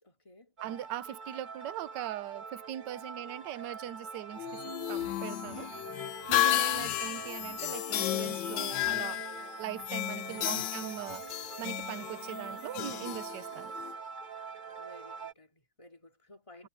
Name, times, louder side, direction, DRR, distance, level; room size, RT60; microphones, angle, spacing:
voice 1, 0.0-0.5 10.3-10.9 14.8-16.7, left 2 dB, 15° left, 2.4 m, -55 dB
sound 1, 0.6-15.3, right 5 dB, 25° right, 1.7 m, -44 dB
voice 2, 0.6-5.7 6.3-9.2 9.6-13.7, right 12 dB, 70° right, 1.3 m, -40 dB
sound 2, 4.4-13.9, left 15 dB, 80° left, 1.3 m, -33 dB
omnidirectional pair, 2.0 m